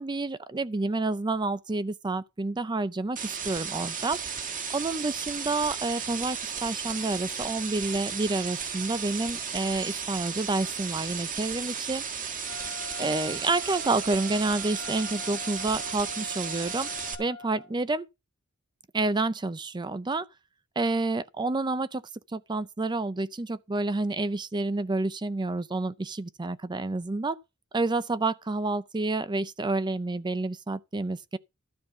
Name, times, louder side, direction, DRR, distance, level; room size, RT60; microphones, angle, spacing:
voice 1, 0.0-12.0 13.0-16.9 17.2-18.1 18.9-20.3 20.8-22.0 22.3-27.4 27.7-31.4, right 2 dB, 20° right, 0.5 m, -29 dB
sound 1, 3.2-17.2, right 6 dB, 40° right, 1.7 m, -34 dB
Wind instrument woodwind instrument, 12.4-17.7, left 2 dB, 80° right, 2.8 m, -43 dB
12.5 x 5.3 x 6.7 m
head